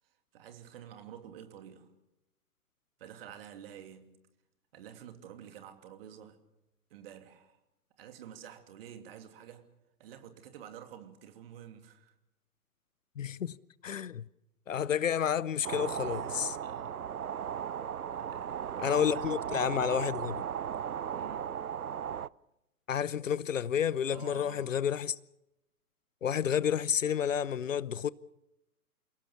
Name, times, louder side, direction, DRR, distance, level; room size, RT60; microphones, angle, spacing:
voice 1, 0.3-1.9 3.0-4.2 4.7-6.4 6.9-7.6 8.0-9.7 10.0-12.1 16.1-17.1 18.1-19.3 21.2-21.5 24.1-24.8, right 9 dB, 40° right, 2.9 m, -50 dB
voice 2, 13.2-13.6 13.8-14.2 14.7-16.6 18.8-20.4 22.9-25.2 26.2-28.1, left 8 dB, 55° left, 0.8 m, -30 dB
sound 1, 15.6-22.3, right 8 dB, 70° right, 0.7 m, -36 dB
29.0 x 17.5 x 7.0 m
figure-of-eight pair, 125°, 45 cm